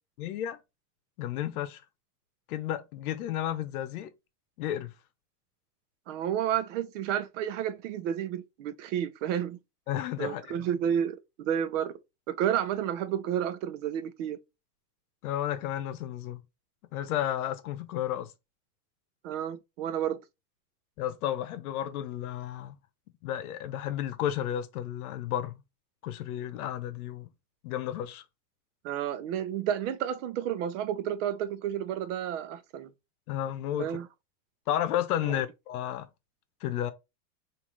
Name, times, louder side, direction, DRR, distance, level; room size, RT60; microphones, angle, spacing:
voice 1, 0.2-0.6 1.2-1.8 2.5-4.1 4.6-4.9 9.9-10.7 15.2-16.4 16.9-18.3 21.0-22.8 23.2-25.5 26.0-27.3 27.6-28.2 33.3-34.0 34.7-36.1 36.6-36.9, left 11 dB, 65° left, 0.9 m, -32 dB
voice 2, 6.1-9.6 10.2-11.9 12.3-14.4 19.2-20.2 28.8-32.9 33.8-34.1 35.2-35.4, right 9 dB, 50° right, 0.8 m, -31 dB
5.3 x 2.7 x 3.2 m
supercardioid pair, 150°, 48 cm